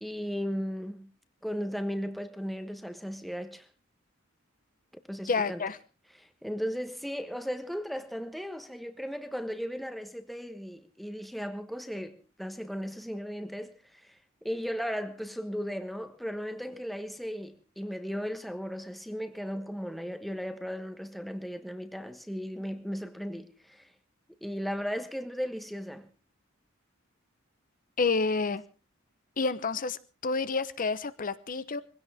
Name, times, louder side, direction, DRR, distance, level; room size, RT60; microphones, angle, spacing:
voice 1, 0.0-1.1 1.4-3.7 5.1-5.6 6.1-14.1 14.4-23.9 24.4-26.1, equal, ahead, 1.2 m, -36 dB
voice 2, 5.3-5.8 28.0-28.6 29.4-31.8, left 4 dB, 45° left, 0.9 m, -29 dB
21.5 x 16.5 x 3.5 m
head